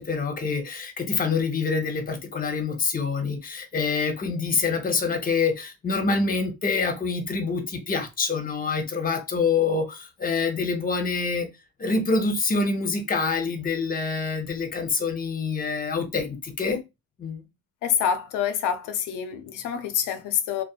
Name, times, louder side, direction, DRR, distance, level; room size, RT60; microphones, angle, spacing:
voice 1, 0.0-11.5 11.8-16.8 17.2-17.4, left 4 dB, 30° left, 0.7 m, -26 dB
voice 2, 17.8-20.6, left 8 dB, 90° left, 0.5 m, -26 dB
2.6 x 2.1 x 2.3 m
cardioid pair, 90°, 30 cm